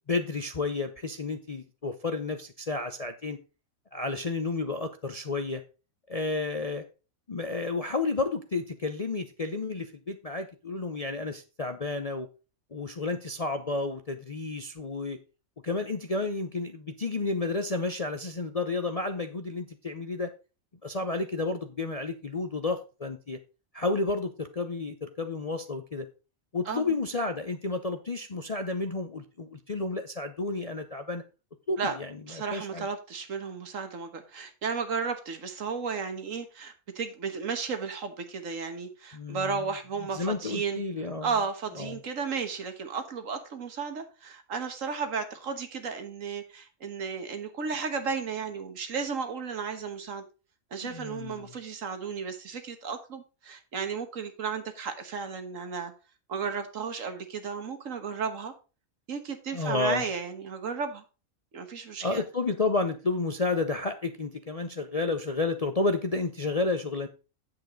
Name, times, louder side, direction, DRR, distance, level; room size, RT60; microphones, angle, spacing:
voice 1, 0.1-3.4 3.9-5.6 6.1-6.8 7.3-12.3 12.7-15.2 15.6-20.3 20.8-23.4 23.7-26.1 26.5-31.2 31.7-32.8 39.1-39.6 40.1-41.3 41.8-42.0 50.8-51.5 59.5-60.0 62.0-67.1, left 3 dB, 40° left, 0.6 m, -31 dB
voice 2, 32.3-40.8 41.2-50.2 50.7-55.9 56.3-58.5 59.1-61.0 61.5-62.2, right 5 dB, 65° right, 1.6 m, -34 dB
8.9 x 7.9 x 3.8 m
omnidirectional pair, 1.5 m